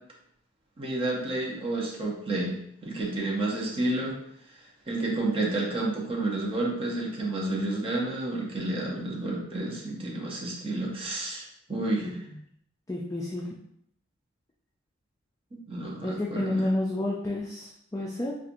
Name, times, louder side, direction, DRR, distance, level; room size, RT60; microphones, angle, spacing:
voice 1, 0.8-2.5 2.8-4.1 4.9-12.1 15.7-16.6, right 2 dB, 30° right, -3 dB, 0.8 m, -30 dB
voice 2, 12.0-12.4 12.9-13.5 16.0-18.4, left 1 dB, 15° left, -2 dB, 0.3 m, -30 dB
4.2 x 2.4 x 2.5 m, 0.73 s
head